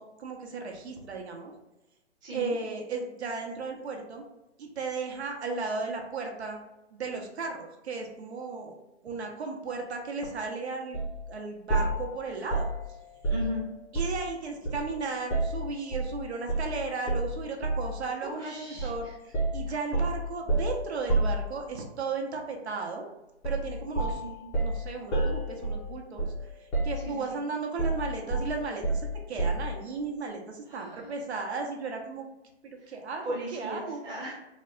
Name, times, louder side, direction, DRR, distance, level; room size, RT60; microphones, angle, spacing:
voice 1, 0.0-1.5 2.3-4.2 4.6-6.6 6.9-8.7 9.0-11.0 11.3-12.7 13.9-19.1 19.5-23.1 23.4-24.2 24.6-26.3 26.6-32.3 32.6-34.0, right 4 dB, 70° right, 2 dB, 1.0 m, -35 dB
voice 2, 2.2-2.5 13.3-13.6 18.2-19.1 19.7-19.8 24.1-24.5 27.0-27.4 30.7-31.1 32.8-32.9 33.2-34.4, equal, 15° right, -4 dB, 0.8 m, -37 dB
sound 1, 10.9-11.2 11.7-14.3 14.6-16.1 16.5-16.7 17.1-18.0 18.8-19.0 19.3-21.9 23.4-23.7 23.9-26.5 26.7-27.3 27.8-29.8, right 2 dB, 10° left, 0.5 m, -30 dB
4.0 x 2.2 x 3.8 m, 0.96 s
hypercardioid pair, 150°, 34 cm